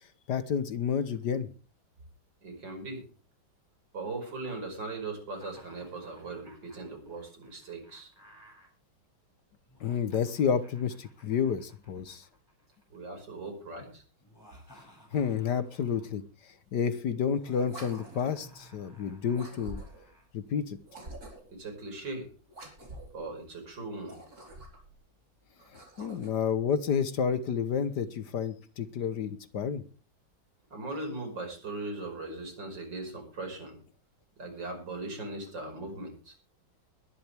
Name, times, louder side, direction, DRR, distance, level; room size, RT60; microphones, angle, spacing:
voice 1, 0.3-1.5 9.8-12.2 15.1-19.8 20.3-20.8 25.7-29.9, left 7 dB, 60° left, 13 dB, 1.5 m, -30 dB
voice 2, 2.4-3.0 3.9-8.1 12.9-14.0 21.5-22.3 23.1-24.2 30.7-33.8 34.4-36.3, right 2 dB, 65° right, 4 dB, 6.1 m, -39 dB
Laughter, 5.3-8.7 9.7-13.0 14.2-16.2 17.3-20.3, equal, 10° left, 7.3 m, -57 dB
sound 1, 17.6-18.5 19.3-20.1 20.8-21.6 22.5-23.2 24.0-24.9 25.6-26.5, right 1 dB, 45° right, 4.9 m, -46 dB
21.0 x 11.0 x 3.4 m, 0.36 s
omnidirectional pair, 2.1 m